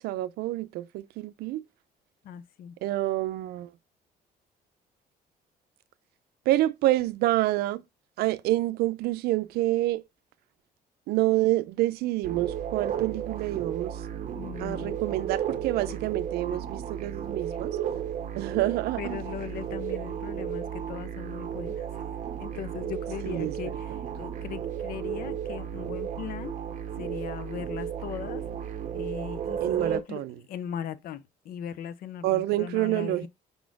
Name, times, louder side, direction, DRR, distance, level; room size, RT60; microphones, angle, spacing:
voice 1, 0.0-1.6 2.8-3.7 6.5-7.8 8.2-10.0 11.1-14.0 14.6-17.8 18.3-19.2 23.2-23.5 29.6-30.3 32.2-33.3, right 16 dB, 85° right, 0.5 m, -27 dB
voice 2, 2.2-2.8 14.3-14.9 15.9-16.0 16.5-16.6 19.0-22.1 22.4-26.5 27.0-28.5 28.9-33.3, left 9 dB, 70° left, 0.6 m, -39 dB
sound 1, 12.2-30.0, right 8 dB, 50° right, 0.7 m, -34 dB
5.2 x 4.2 x 4.6 m
cardioid pair, 130°, 16 cm